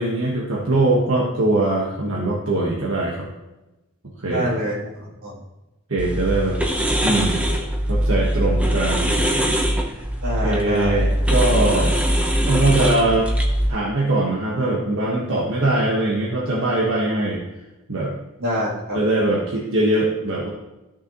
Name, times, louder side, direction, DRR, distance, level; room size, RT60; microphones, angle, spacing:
voice 1, 0.0-3.3 4.2-4.5 5.9-6.6 7.0-7.5 7.9-9.2 10.4-11.9 12.4-13.3 13.7-17.4 17.9-18.1 18.9-20.5, right 2 dB, 65° right, -4 dB, 1.4 m, -21 dB
voice 2, 4.3-5.4 10.2-11.1 18.4-19.0, equal, 85° right, -5 dB, 2.9 m, -26 dB
sound 1, 6.0-13.7, equal, 5° right, 0.8 m, -21 dB
13.5 x 6.5 x 3.0 m, 1.0 s
head